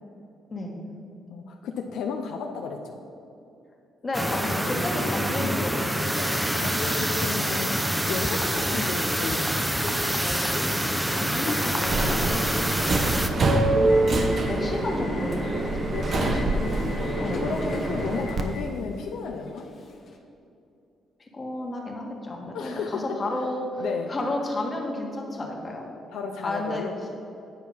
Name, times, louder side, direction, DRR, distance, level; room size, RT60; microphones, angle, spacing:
voice 1, 1.3-3.0 5.4-5.6 6.5-9.7 11.7-11.9 13.8-14.0 15.9-16.8 17.2-19.7 22.5-23.2 23.8-24.1 26.1-26.9, left 5 dB, 80° left, 3 dB, 0.5 m, -33 dB
voice 2, 4.0-6.3 10.4-13.6 14.5-15.6 15.9-16.6 17.2-17.6 21.3-25.8 26.4-26.9, left 1 dB, 30° left, 0 dB, 1.5 m, -32 dB
sound 1, 4.1-13.3, equal, 5° right, 0.6 m, -26 dB
Subway metro underground, 4.2-20.2, left 2 dB, 50° left, 1.0 m, -37 dB
Subway metro underground 2, 11.8-18.4, right 2 dB, 45° right, 0.8 m, -25 dB
9.0 x 4.6 x 5.5 m, 2.6 s
cardioid pair, 90°, 0 cm